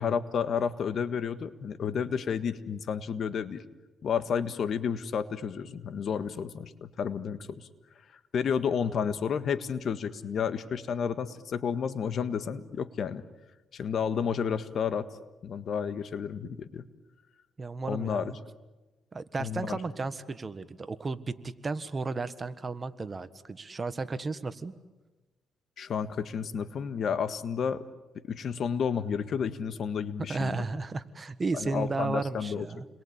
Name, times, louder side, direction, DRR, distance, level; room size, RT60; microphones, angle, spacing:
voice 1, 0.0-3.6 4.0-7.7 8.3-13.2 13.7-15.1 15.4-16.8 17.9-18.3 19.4-19.8 25.8-27.8 28.3-30.6 31.5-32.7, left 7 dB, 60° left, 11 dB, 1.6 m, -31 dB
voice 2, 17.6-18.4 19.1-24.7 30.3-32.8, right 3 dB, 30° right, 12 dB, 1.5 m, -34 dB
30.0 x 22.5 x 8.8 m, 1.2 s
cardioid pair, 90°, 0 cm